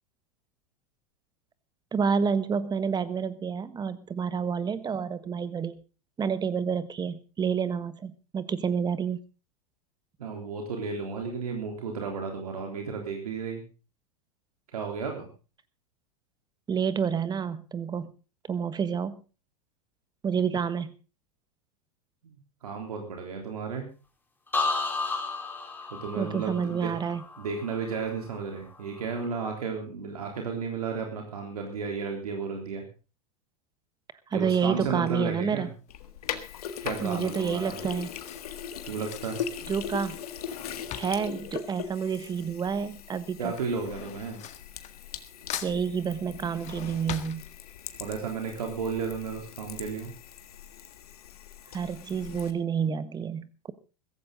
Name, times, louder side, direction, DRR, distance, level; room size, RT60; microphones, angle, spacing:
voice 1, 1.9-5.8 6.2-9.2 16.7-18.1 18.5-19.1 20.2-20.9 26.2-27.2 34.3-35.7 37.0-38.1 39.7-40.2 40.9-43.5 45.6-47.4 51.7-53.7, right 6 dB, 20° right, 14 dB, 1.3 m, -29 dB
voice 2, 10.2-13.6 14.7-15.3 22.2-23.9 25.9-26.9 27.4-32.8 34.3-35.7 36.8-37.8 38.8-39.4 43.4-44.4 48.0-50.1, right 5 dB, 80° right, 2 dB, 3.6 m, -33 dB
sound 1, 24.5-28.3 28.7-29.2, left 3 dB, 10° left, 3.3 m, -33 dB
Drawer open or close / Cutlery silverware, 35.5-35.9 36.7-42.6 42.9-45.2 45.5-48.0 48.4-48.5 48.8-48.9, left 11 dB, 35° left, 1.6 m, -43 dB
Sink (filling or washing), 35.9-52.5, left 8 dB, 80° left, 1.7 m, -40 dB
16.0 x 14.5 x 3.8 m, 0.34 s
hypercardioid pair, 100°, 19 cm